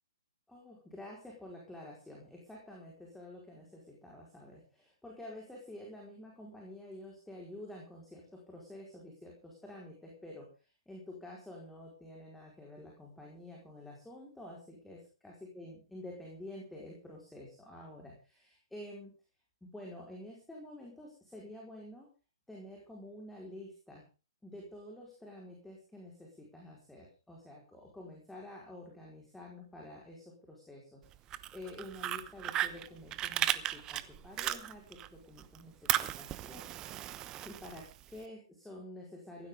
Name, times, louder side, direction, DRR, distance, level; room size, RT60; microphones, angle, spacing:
voice 1, 0.5-19.1 19.6-22.1 22.5-24.0 24.4-36.7 37.4-39.5, left 1 dB, 5° left, -2 dB, 4.8 m, -49 dB
Fire, 31.1-35.1 35.4-38.2, right 13 dB, 25° right, 0.9 m, -35 dB
17.0 x 15.5 x 3.8 m, 0.35 s
hypercardioid pair, 130°, 3 cm